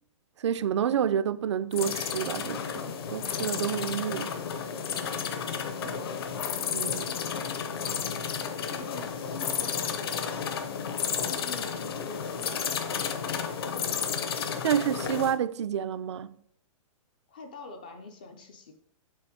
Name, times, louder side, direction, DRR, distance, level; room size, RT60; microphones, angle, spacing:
voice 1, 0.4-4.4 6.7-7.1 14.6-16.3, right 9 dB, 55° right, 0.4 m, -29 dB
sound 1, 1.7-15.4, left 7 dB, 45° left, 0.7 m, -32 dB
voice 2, 5.7-6.3 8.6-10.5 11.3-14.0 17.3-18.7, left 3 dB, 15° left, 0.3 m, -45 dB
7.6 x 5.2 x 4.8 m
hypercardioid pair, 180°, 18 cm